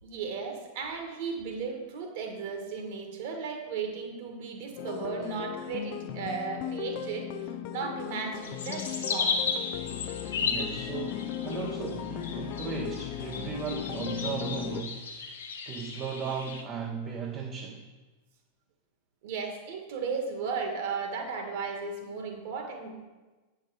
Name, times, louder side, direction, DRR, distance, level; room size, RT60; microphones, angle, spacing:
voice 1, 0.0-7.3 7.7-9.4 19.2-22.9, right 5 dB, 50° right, 4 dB, 1.6 m, -35 dB
sound 1, 4.8-14.8, left 10 dB, 45° left, 0.5 m, -37 dB
sound 2, 8.4-16.6, left 5 dB, 65° left, 0.9 m, -35 dB
voice 2, 10.4-15.0 15.7-17.9, right 6 dB, 30° right, 1 dB, 0.8 m, -36 dB
8.6 x 5.6 x 4.8 m, 1.2 s
figure-of-eight pair, 90°, 0 cm